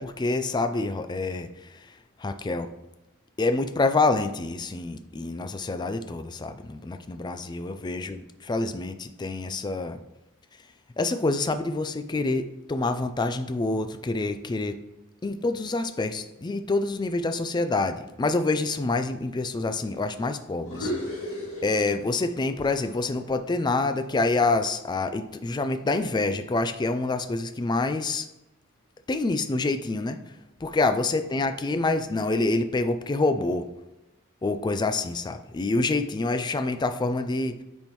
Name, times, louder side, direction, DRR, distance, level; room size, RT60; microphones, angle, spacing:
voice 1, 0.0-1.5 2.2-2.7 3.4-10.0 11.0-14.7 15.2-20.9 21.6-28.3 29.1-30.2 30.6-33.7 34.4-37.6, left 3 dB, 20° left, 9 dB, 0.3 m, -27 dB
sound 1, 20.6-22.3 22.6-24.9, equal, 80° left, 2.2 m, -36 dB
8.6 x 4.4 x 3.0 m, 0.96 s
head